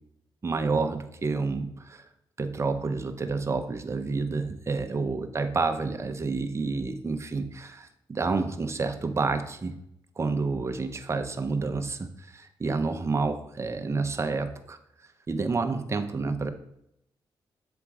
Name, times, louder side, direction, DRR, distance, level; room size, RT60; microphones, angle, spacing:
voice 1, 0.4-2.1 2.4-9.8 10.2-14.8 15.3-16.5, right 4 dB, 30° right, 7 dB, 0.7 m, -29 dB
7.0 x 3.5 x 4.8 m, 0.78 s
cardioid pair, 70°, 9 cm